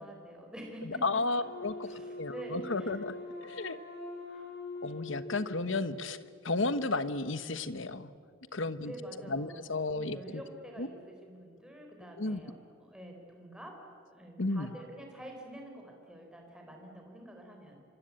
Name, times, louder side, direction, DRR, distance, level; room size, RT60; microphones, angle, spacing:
voice 1, 0.0-1.2 1.8-3.0 3.4-3.6 4.2-4.6 8.8-9.6 9.9-17.8, right 1 dB, 5° right, 1 dB, 4.8 m, -47 dB
voice 2, 0.8-3.1 3.4-3.8 4.8-8.1 8.5-8.9 9.3-10.4 10.8-10.9 12.2-12.4 14.4-14.7, left 3 dB, 60° left, 13 dB, 1.2 m, -33 dB
Wind instrument woodwind instrument, 1.4-6.4, left 2 dB, 45° left, 6.7 m, -44 dB
26.0 x 25.5 x 8.9 m, 2.2 s
head